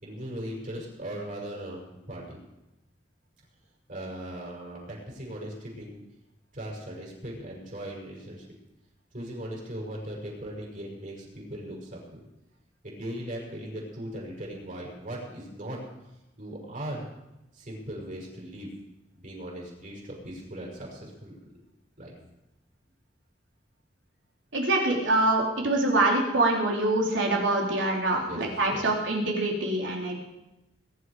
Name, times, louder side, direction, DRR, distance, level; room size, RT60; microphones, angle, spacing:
voice 1, 0.0-2.4 3.9-6.0 6.5-8.4 9.1-12.2 12.8-15.8 16.4-17.0 17.5-18.7 19.1-21.4 22.0-22.1 28.2-28.4 28.7-28.9, right 1 dB, 45° right, -3 dB, 6.3 m, -38 dB
voice 2, 24.5-30.2, right 2 dB, 85° right, -2 dB, 3.8 m, -25 dB
22.0 x 11.5 x 5.0 m, 0.94 s
head